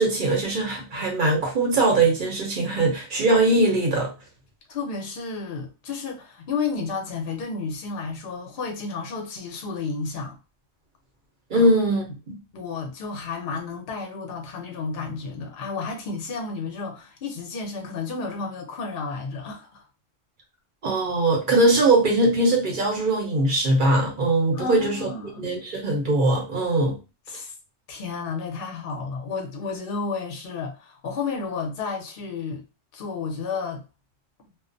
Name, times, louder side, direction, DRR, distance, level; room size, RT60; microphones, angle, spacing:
voice 1, 0.0-4.1 11.5-12.4 20.8-25.1 25.4-27.0, right 2 dB, 45° right, 0.8 m, -21 dB
voice 2, 4.7-10.4 11.5-11.7 12.5-19.8 24.5-25.5 27.3-27.5 27.9-32.6 32.9-33.8, left 4 dB, 55° left, 0.7 m, -32 dB
2.3 x 2.1 x 2.5 m
omnidirectional pair, 1.3 m